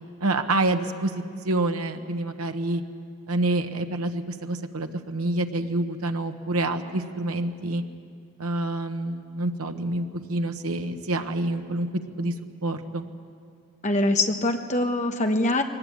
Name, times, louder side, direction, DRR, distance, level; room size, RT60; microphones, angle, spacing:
voice 1, 0.2-1.1 1.4-2.8 3.3-7.8 8.4-11.9 12.2-12.3 12.6-13.1, right 2 dB, 90° right, 6 dB, 1.1 m, -27 dB
voice 2, 13.8-15.6, left 2 dB, 35° left, 5 dB, 1.2 m, -23 dB
21.5 x 19.0 x 8.7 m, 2.3 s
head